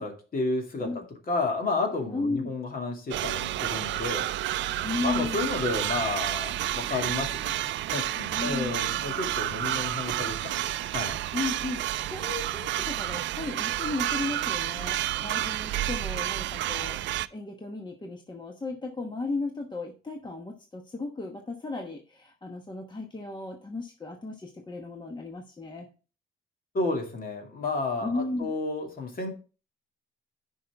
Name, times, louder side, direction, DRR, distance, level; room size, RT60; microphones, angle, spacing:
voice 1, 0.0-4.3 5.0-7.5 7.9-11.2 26.7-29.3, left 3 dB, 45° left, 2 dB, 2.3 m, -31 dB
voice 2, 2.1-2.5 4.8-5.5 8.3-8.8 11.3-25.9 28.0-28.5, left 3 dB, 20° left, 2 dB, 1.1 m, -35 dB
sound 1, 3.1-17.3, right 14 dB, 70° right, 0.4 m, -30 dB
10.0 x 5.6 x 3.5 m, 0.35 s
cardioid pair, 90°, 20 cm